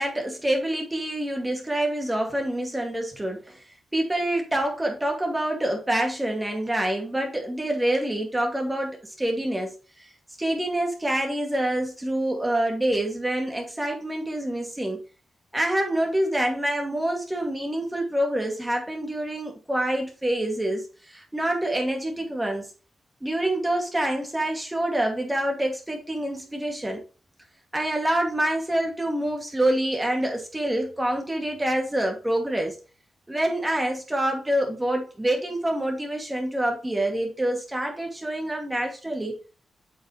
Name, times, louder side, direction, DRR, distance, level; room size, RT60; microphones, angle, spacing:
voice 1, 0.0-3.6 3.9-10.1 10.4-15.0 15.5-22.7 23.2-27.0 27.7-32.8 33.3-39.4, right 1 dB, 15° right, 2.3 m, -26 dB
8.5 x 5.6 x 3.2 m
cardioid pair, 100°, 0 cm